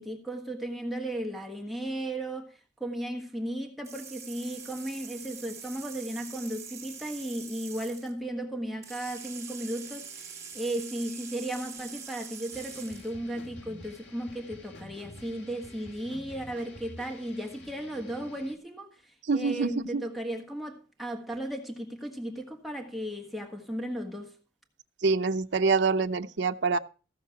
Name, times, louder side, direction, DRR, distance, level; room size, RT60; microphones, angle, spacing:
voice 1, 0.0-24.4, right 1 dB, ahead, 1.4 m, -35 dB
sound 1, 3.8-8.1 8.8-13.1, right 6 dB, 15° right, 2.1 m, -44 dB
sound 2, 12.5-18.6, left 1 dB, 80° left, 1.9 m, -49 dB
voice 2, 19.3-20.0 25.0-26.8, right 4 dB, 75° right, 0.7 m, -26 dB
15.5 x 6.5 x 5.8 m
head